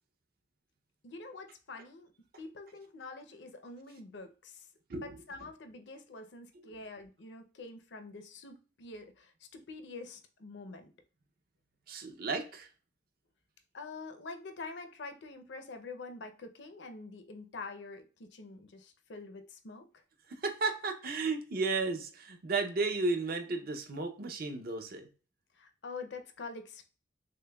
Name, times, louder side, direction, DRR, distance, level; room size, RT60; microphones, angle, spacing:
voice 1, 1.0-2.1 2.4-4.7 4.9-10.9 13.7-19.9 25.6-26.9, left 3 dB, 65° left, 7 dB, 0.6 m, -46 dB
voice 2, 11.9-12.7 20.3-25.1, right 3 dB, 50° right, 6 dB, 0.6 m, -33 dB
6.4 x 2.2 x 2.2 m, 0.36 s
head